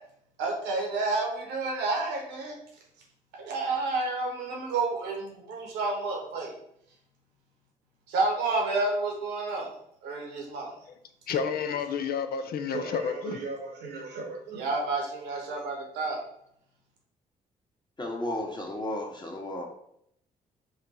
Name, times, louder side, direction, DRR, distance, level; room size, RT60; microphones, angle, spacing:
voice 1, 0.4-2.6 3.3-6.5 8.1-9.7 10.0-10.7 12.7-16.2, right 3 dB, 75° right, 1.1 m, -30 dB
voice 2, 11.3-13.4, left 6 dB, 60° left, 0.5 m, -30 dB
voice 3, 18.0-19.7, left 1 dB, 25° left, 1.3 m, -33 dB
5.0 x 2.3 x 4.1 m
hypercardioid pair, 45°, 18 cm